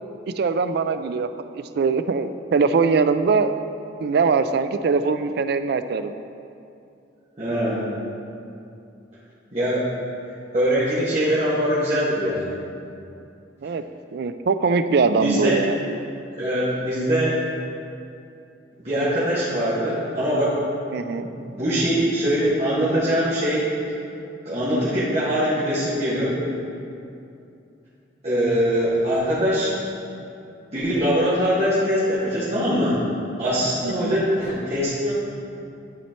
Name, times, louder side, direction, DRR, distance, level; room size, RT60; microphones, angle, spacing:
voice 1, 0.4-3.6 4.0-6.1 13.6-13.8 14.1-15.8 20.9-21.3 33.8-34.2, right 4 dB, 60° right, 11 dB, 0.3 m, -22 dB
voice 2, 7.4-7.9 9.5-9.9 10.5-12.5 15.2-15.6 16.4-17.4 18.8-20.5 21.2-23.7 24.4-26.4 28.2-29.7 30.7-33.0 33.4-35.1, equal, 35° right, -11 dB, 1.6 m, -22 dB
11.0 x 4.3 x 4.4 m, 2.6 s
head